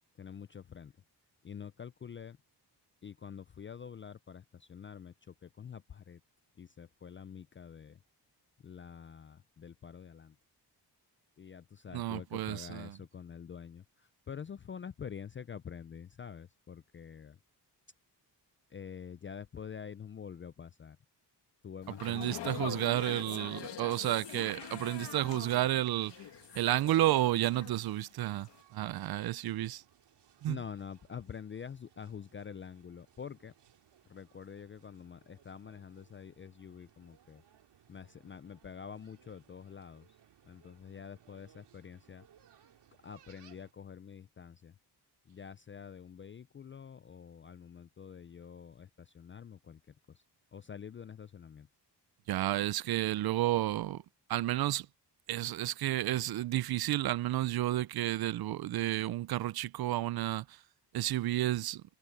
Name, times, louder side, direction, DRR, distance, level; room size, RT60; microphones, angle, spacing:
voice 1, 0.2-0.9 1.4-2.4 3.0-6.2 6.6-8.0 8.6-10.4 11.4-17.4 18.7-21.0 21.6-22.7 30.5-33.5 34.1-37.4 37.9-40.1 40.4-42.3 43.0-44.7 45.3-50.2 50.5-51.7, left 7 dB, 30° left, 0.4 m, -47 dB
voice 2, 11.9-13.0 22.0-26.1 26.5-29.8 30.4-30.6 52.3-54.0 54.3-54.9 55.3-60.6 60.9-61.8, right 15 dB, 60° right, 0.5 m, -31 dB
sound 1, 21.8-28.1 28.4-28.6, left 10 dB, 85° left, 1.8 m, -44 dB
sound 2, 23.9-43.7, right 10 dB, 85° right, 2.3 m, -64 dB
wide cardioid pair, 150°, 41 cm